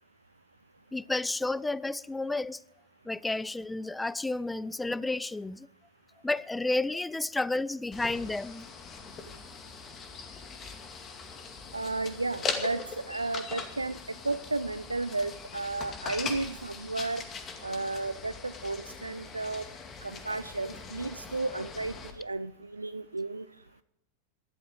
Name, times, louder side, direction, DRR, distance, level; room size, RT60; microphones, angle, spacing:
voice 1, 0.9-2.6 3.1-5.7 6.2-8.7, left 2 dB, 5° left, 0.4 m, -31 dB
sound 1, 7.9-22.1, left 5 dB, 25° left, 2.2 m, -41 dB
voice 2, 11.7-14.0 14.2-17.2 17.6-19.6 20.0-23.5, right 3 dB, 80° right, 0.4 m, -33 dB
20.0 x 12.5 x 3.8 m
figure-of-eight pair, 90°, 0 cm